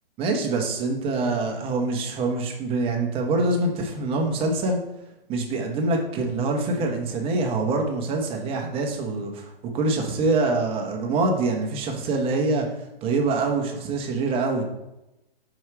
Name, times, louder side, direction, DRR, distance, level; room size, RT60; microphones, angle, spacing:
voice 1, 0.2-4.8 5.3-12.7 13.0-14.6, right 3 dB, 20° right, 1 dB, 1.0 m, -25 dB
5.3 x 4.9 x 4.7 m, 0.93 s
hypercardioid pair, 135°, 30 cm